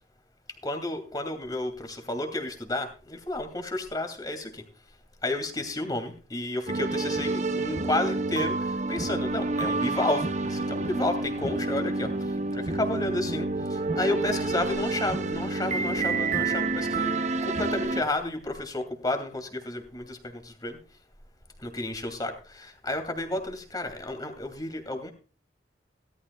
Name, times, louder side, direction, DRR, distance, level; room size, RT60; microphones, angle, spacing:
voice 1, 0.6-4.6 5.2-20.8 21.6-25.1, left 2 dB, 25° left, 6 dB, 2.5 m, -32 dB
sound 1, 6.7-18.0, right 3 dB, 40° right, 0.9 m, -29 dB
17.5 x 13.0 x 2.3 m, 0.35 s
head